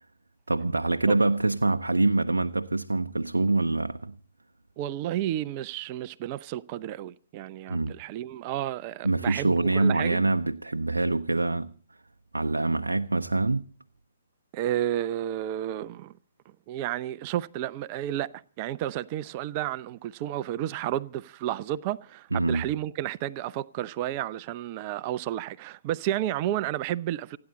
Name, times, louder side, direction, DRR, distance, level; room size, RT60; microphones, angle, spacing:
voice 1, 0.5-4.2 7.7-7.9 9.0-11.7 12.3-13.7 22.3-22.7, right 2 dB, 75° right, 0.7 m, -25 dB
voice 2, 4.8-10.2 14.5-16.1 16.7-27.4, right 12 dB, 30° right, 0.6 m, -31 dB
29.0 x 9.9 x 4.1 m
figure-of-eight pair, 130°, 0 cm